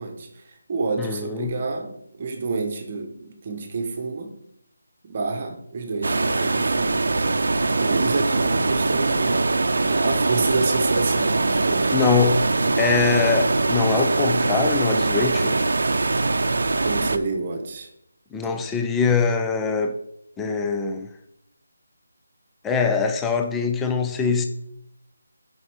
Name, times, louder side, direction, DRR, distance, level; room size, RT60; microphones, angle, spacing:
voice 1, 0.0-4.3 5.0-7.0 7.4-9.4 9.8-12.1 16.8-17.9 18.4-18.7, right 3 dB, 30° right, 1.1 m, -29 dB
voice 2, 1.0-1.5 11.9-12.4 12.8-15.6 18.3-20.0 20.4-21.1 22.6-24.5, left 5 dB, 5° left, 0.4 m, -23 dB
sound 1, 6.0-17.2, right 3 dB, 65° right, 0.7 m, -22 dB
9.7 x 5.3 x 4.7 m
figure-of-eight pair, 175°, 0 cm